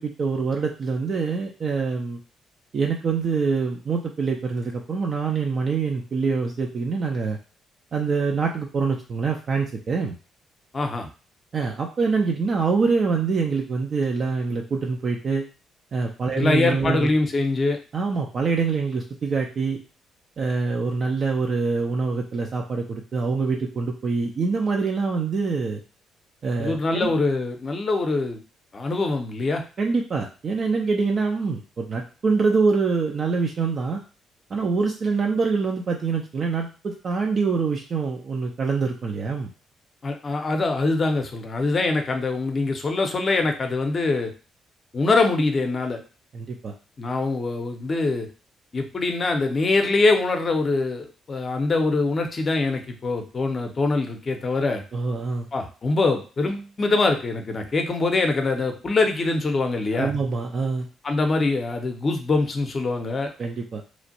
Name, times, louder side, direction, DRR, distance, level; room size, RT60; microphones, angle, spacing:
voice 1, 0.0-2.2 2.7-7.4 7.9-10.2 11.5-15.4 15.9-17.1 17.9-19.8 20.4-25.8 26.4-27.2 29.8-34.0 34.5-39.5 46.3-46.7 54.9-55.5 59.9-60.9 63.4-63.8, right 4 dB, 45° right, 1 dB, 0.4 m, -25 dB
voice 2, 10.7-11.1 16.3-17.8 26.6-28.4 28.7-29.6 40.0-44.3 44.9-46.0 47.0-48.3 48.7-54.8 55.5-60.1 61.0-63.3, left 3 dB, 40° left, 4 dB, 0.6 m, -23 dB
3.0 x 2.4 x 2.7 m, 0.35 s
figure-of-eight pair, 40°, 0 cm